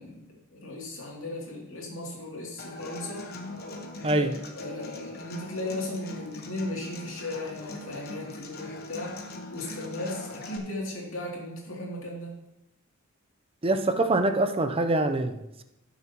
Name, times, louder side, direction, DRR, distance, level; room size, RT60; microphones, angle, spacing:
voice 1, 0.0-3.2 4.1-9.2 9.5-12.3, left 1 dB, 65° left, -3 dB, 2.8 m, -36 dB
Human voice / Acoustic guitar, 2.6-10.6, left 2 dB, 50° left, 1.2 m, -41 dB
voice 2, 13.6-15.6, right 2 dB, 25° right, 7 dB, 0.6 m, -25 dB
18.0 x 6.9 x 3.0 m, 0.90 s
head